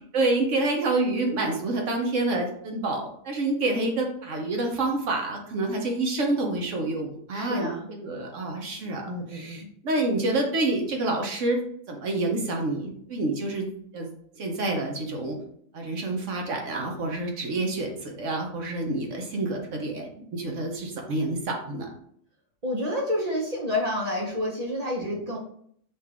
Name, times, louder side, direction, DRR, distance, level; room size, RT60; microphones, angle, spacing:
voice 1, 0.0-11.6 11.9-14.1 14.3-15.4 15.7-21.9, right 2 dB, 65° right, 2 dB, 1.2 m, -28 dB
voice 2, 7.3-7.9 9.1-9.7 22.6-25.4, left 1 dB, 35° right, -1 dB, 0.8 m, -29 dB
5.6 x 2.6 x 3.5 m, 0.66 s
omnidirectional pair, 1.5 m